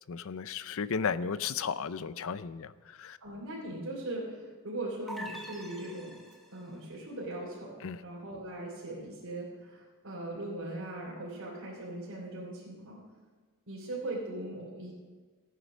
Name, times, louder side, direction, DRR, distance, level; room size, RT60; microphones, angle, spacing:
voice 1, 0.1-3.2 7.8-8.0, left 6 dB, 65° left, 15 dB, 0.5 m, -34 dB
voice 2, 3.2-6.2 6.5-13.0 13.7-14.9, right 1 dB, 65° right, -6 dB, 3.1 m, -40 dB
sound 1, 5.1-6.7, equal, ahead, 1.3 m, -44 dB
15.5 x 9.5 x 6.2 m, 1.5 s
head